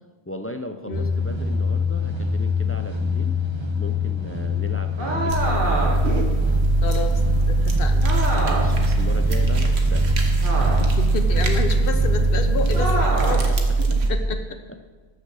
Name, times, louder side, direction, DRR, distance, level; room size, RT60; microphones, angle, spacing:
voice 1, 0.3-3.4 3.8-6.0 8.4-10.1 11.9-12.0 12.2-12.8 13.1-14.2 14.7-14.8, left 1 dB, 20° left, 7 dB, 0.4 m, -36 dB
sound 1, 0.9-13.1, left 5 dB, 30° right, 0.9 m, -26 dB
sound 2, 5.0-6.2 8.0-8.9 10.4-11.1 12.7-13.5, right 2 dB, 55° right, 1.9 m, -26 dB
sound 3, 5.3-14.1, right 3 dB, 90° right, 1.5 m, -21 dB
voice 2, 6.8-7.2 7.5-8.0 10.8-14.4, left 4 dB, 60° left, 7 dB, 1.1 m, -30 dB
13.0 x 6.5 x 6.3 m, 1.4 s
omnidirectional pair, 1.1 m